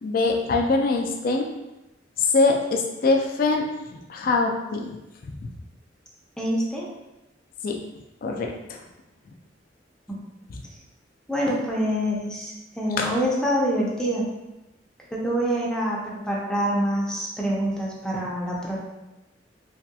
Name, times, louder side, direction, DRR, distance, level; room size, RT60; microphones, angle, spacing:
voice 1, 0.0-1.5 2.2-5.0 7.6-7.8 8.2-8.8 10.5-10.6 13.0-13.1, left 3 dB, 50° left, 1 dB, 0.4 m, -23 dB
voice 2, 6.4-6.9 10.1-10.2 11.3-14.3 15.1-18.9, equal, 5° left, -4 dB, 0.5 m, -26 dB
3.1 x 2.8 x 2.2 m, 0.97 s
head